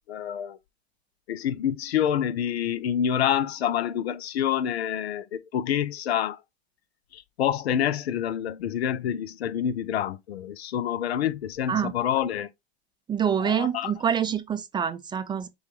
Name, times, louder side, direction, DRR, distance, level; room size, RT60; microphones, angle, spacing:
voice 1, 0.1-0.6 1.3-6.4 7.1-12.5 13.4-13.9, left 9 dB, 85° left, 0.5 m, -27 dB
voice 2, 13.1-15.5, right 8 dB, 15° right, 0.4 m, -26 dB
6.3 x 2.3 x 3.1 m
hypercardioid pair, 105°, 31 cm